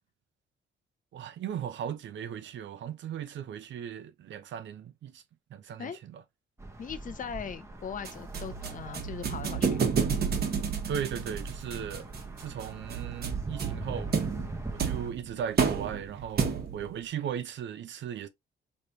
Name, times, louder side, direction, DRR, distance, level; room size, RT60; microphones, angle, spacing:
voice 1, 1.1-5.2 5.5-6.2 10.9-12.1 12.4-14.2 14.7-18.3, right 9 dB, 70° right, 0.8 m, -37 dB
sound 1, 6.6-15.1, right 2 dB, 15° right, 0.9 m, -42 dB
voice 2, 6.8-9.8, left 7 dB, 40° left, 0.8 m, -39 dB
sound 2, 8.0-16.9, right 6 dB, 50° right, 1.3 m, -31 dB
3.3 x 3.3 x 2.7 m
cardioid pair, 90°, 20 cm